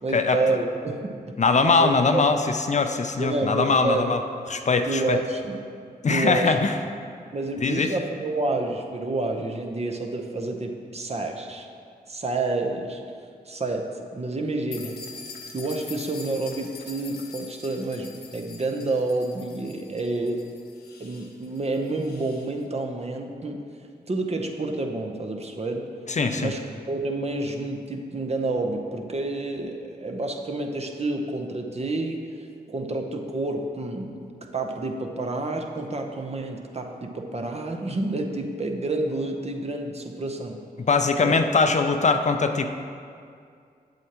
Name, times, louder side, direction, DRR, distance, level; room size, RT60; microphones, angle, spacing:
voice 1, 0.0-1.1 1.8-2.3 3.2-4.2 4.9-5.6 6.1-6.5 7.0-11.7 12.1-13.0 13.5-15.0 15.5-20.5 21.0-23.6 24.1-25.9 26.4-34.2 34.5-40.6 41.2-41.4, right 2 dB, 40° right, 3 dB, 0.8 m, -29 dB
voice 2, 1.4-4.2 4.5-5.2 6.0-6.7 7.6-7.9 26.1-26.5 40.8-42.7, left 4 dB, 45° left, 6 dB, 0.5 m, -22 dB
sound 1, 14.7-22.5, left 4 dB, 80° left, 0.9 m, -44 dB
7.8 x 7.2 x 2.9 m, 2.3 s
cardioid pair, 55°, 17 cm